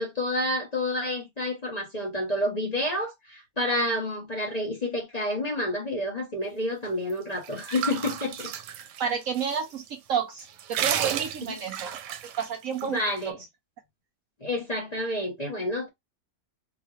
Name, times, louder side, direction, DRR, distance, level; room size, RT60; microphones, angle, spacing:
voice 1, 0.0-8.5 11.4-11.6 12.9-13.4 14.4-15.9, left 1 dB, 30° left, 0.9 m, -29 dB
sound 1, 7.1-9.5 9.9-10.0 10.4-12.9, right 10 dB, 85° right, 1.2 m, -32 dB
voice 2, 9.0-12.0 12.4-13.3, right 7 dB, 70° right, 0.9 m, -30 dB
4.0 x 2.3 x 3.1 m
omnidirectional pair, 1.8 m